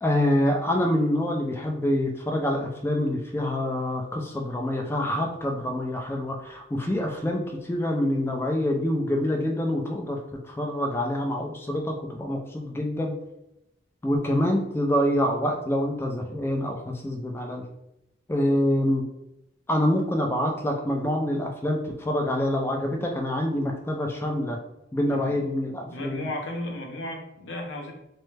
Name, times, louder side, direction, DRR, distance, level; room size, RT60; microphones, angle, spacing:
voice 1, 0.0-13.1 14.0-17.6 18.3-19.1 19.7-24.6 24.9-26.3, left 1 dB, 15° left, 1 dB, 0.3 m, -26 dB
voice 2, 25.0-25.5 25.8-27.9, left 1 dB, 85° left, 2 dB, 0.6 m, -35 dB
3.2 x 2.1 x 3.2 m, 0.84 s
head